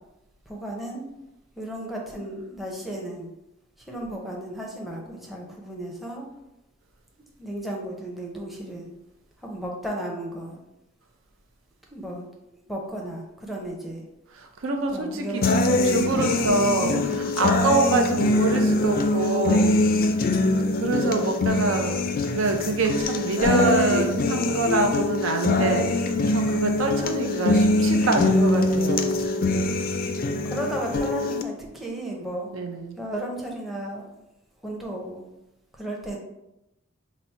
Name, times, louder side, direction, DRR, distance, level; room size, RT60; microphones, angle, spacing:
voice 1, 0.5-1.0 1.6-3.3 3.9-6.2 7.4-8.9 9.4-10.6 11.9-12.3 12.7-14.0 14.9-16.3 16.8-17.3 30.4-32.5 33.0-34.0 34.6-35.2 35.8-36.2, right 1 dB, ahead, -1 dB, 0.5 m, -34 dB
voice 2, 14.3-16.9 17.4-19.7 20.8-22.0 22.3-29.2 32.5-33.0, right 3 dB, 85° right, 4 dB, 0.6 m, -25 dB
sound 1, 15.4-31.4, left 2 dB, 45° left, 0.3 m, -23 dB
4.1 x 2.0 x 4.3 m, 0.90 s
head